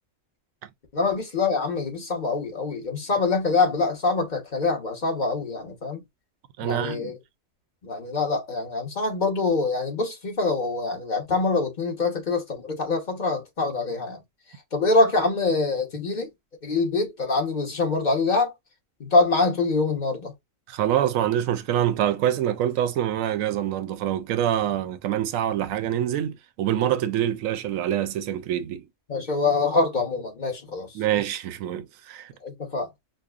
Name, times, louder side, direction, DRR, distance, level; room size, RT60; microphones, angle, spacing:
voice 1, 0.9-6.0 6.6-7.1 7.8-14.2 14.7-16.3 16.6-18.5 19.0-20.3 29.1-30.9 32.4-32.9, left 3 dB, 40° left, 1.1 m, -24 dB
voice 2, 6.6-7.1 20.7-28.9 30.9-32.3, right 11 dB, 85° right, 1.0 m, -25 dB
5.2 x 2.1 x 2.4 m
omnidirectional pair, 1.3 m